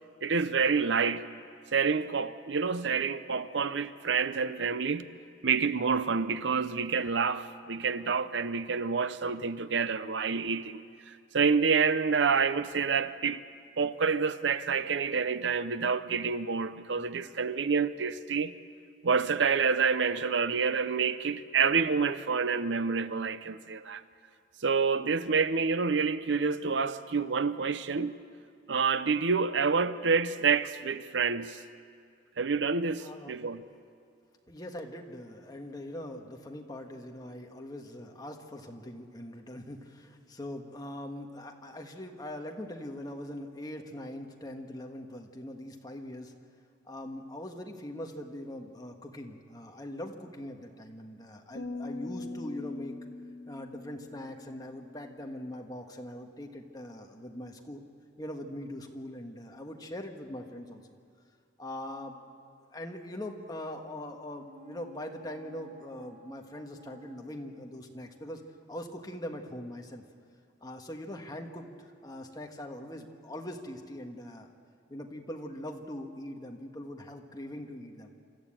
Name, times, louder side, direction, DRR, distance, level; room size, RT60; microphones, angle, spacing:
voice 1, 0.2-1.2 1.7-5.1 5.4-13.4 13.8-18.5 19.0-24.0 24.6-28.1 28.7-31.6 32.4-33.6, right 5 dB, 80° right, 0.7 m, -28 dB
voice 2, 33.0-33.4 34.5-46.3 46.8-53.0 53.5-57.8 58.2-60.8 61.6-62.2 62.7-68.4 68.7-70.0 70.6-74.5 74.9-78.1, left 1 dB, 20° left, 1.5 m, -42 dB
sound 1, 51.5-55.0, left 2 dB, 85° left, 2.0 m, -42 dB
sound 2, 64.4-68.2 68.5-68.6, right 3 dB, 45° right, 0.8 m, -55 dB
26.5 x 14.0 x 8.8 m
head